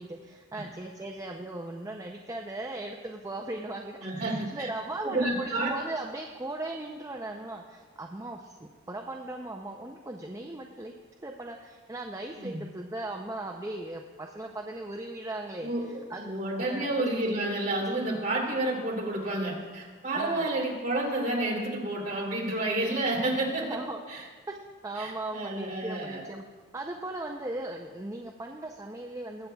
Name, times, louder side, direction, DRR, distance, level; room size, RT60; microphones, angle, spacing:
voice 1, 0.0-10.9 11.2-16.3 16.6-16.9 20.1-20.5 23.7-24.0 24.5-24.6 24.8-26.5 26.7-29.5, right 2 dB, 15° right, 1 dB, 0.4 m, -38 dB
voice 2, 4.0-4.7 5.0-5.7 12.4-12.6 15.6-23.6 24.1-24.2 25.0-26.2, right 2 dB, 35° right, -4 dB, 2.8 m, -30 dB
21.5 x 8.4 x 2.3 m, 1.4 s
head